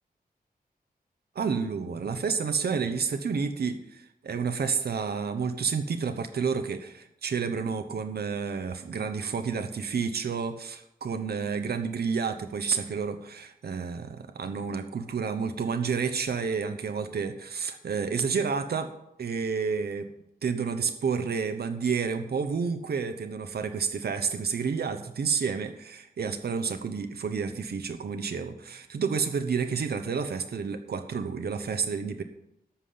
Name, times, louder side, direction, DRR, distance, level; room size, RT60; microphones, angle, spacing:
voice 1, 1.3-18.9 19.2-20.1 20.4-32.2, right 5 dB, 85° right, 8 dB, 0.9 m, -30 dB
13.0 x 5.7 x 8.6 m, 0.80 s
wide cardioid pair, 115°, 16 cm